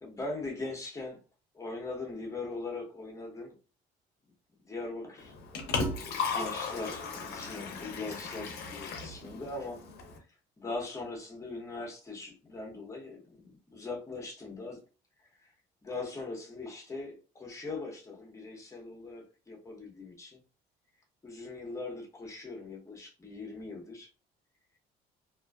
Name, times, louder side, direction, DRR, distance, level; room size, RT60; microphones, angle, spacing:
voice 1, 0.0-1.2 1.5-3.5 4.6-5.3 5.7-9.8 10.1-10.2 10.6-14.8 15.8-20.4 21.2-24.1, left 3 dB, 20° left, -1 dB, 0.8 m, -40 dB
Liquid, 5.2-10.2, left 4 dB, 75° left, 0.6 m, -36 dB
2.5 x 2.1 x 2.3 m, 0.35 s
cardioid pair, 110°, 17 cm